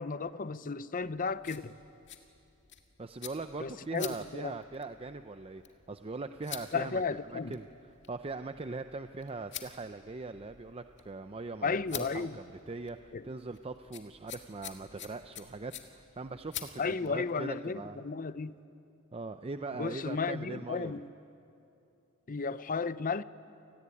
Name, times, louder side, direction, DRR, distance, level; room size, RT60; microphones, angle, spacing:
voice 1, 0.0-1.8 3.6-4.6 6.7-7.5 11.6-12.4 13.1-13.2 16.8-18.6 19.8-21.1 22.3-23.2, left 4 dB, 40° left, 0.6 m, -34 dB
sound 1, 1.0-17.2, left 10 dB, 55° left, 1.9 m, -49 dB
voice 2, 3.0-5.6 5.9-7.0 7.3-7.7 8.1-18.0 19.1-20.9, right 3 dB, 25° right, 0.5 m, -41 dB
29.0 x 19.5 x 9.8 m
head